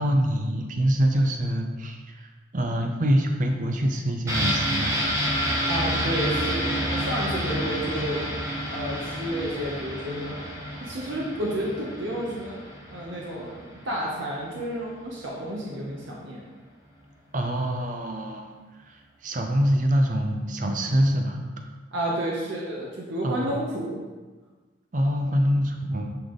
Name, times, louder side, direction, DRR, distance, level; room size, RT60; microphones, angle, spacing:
voice 1, 0.0-5.1 17.3-18.5 18.8-21.4 23.2-23.5 24.9-26.2, equal, 40° right, 3 dB, 0.6 m, -25 dB
sound 1, 4.3-13.9 14.2-14.3, equal, 15° right, 1.0 m, -29 dB
voice 2, 5.7-8.2 8.7-10.4 10.8-12.6 12.9-16.4 21.9-24.0, right 1 dB, 75° right, -3 dB, 0.9 m, -31 dB
8.0 x 3.4 x 3.8 m, 1.3 s
head